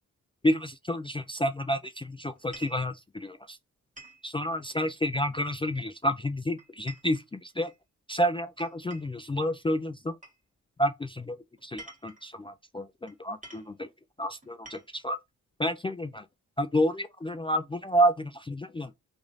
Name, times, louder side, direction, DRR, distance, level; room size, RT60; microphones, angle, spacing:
voice 1, 0.4-3.6 4.2-7.7 8.1-10.1 10.8-11.4 11.6-13.9 14.2-15.2 15.6-16.2 16.6-18.9, equal, 15° left, 0.4 m, -29 dB
sound 1, 2.3-2.9 4.0-4.3 5.7-6.1 6.6-7.8 8.6-9.2 10.2-10.4 11.6-12.3 13.1-13.2 13.4-13.7 14.4-15.1, right 2 dB, 20° right, 1.6 m, -49 dB
3.0 x 2.6 x 3.9 m
supercardioid pair, 45°, 37 cm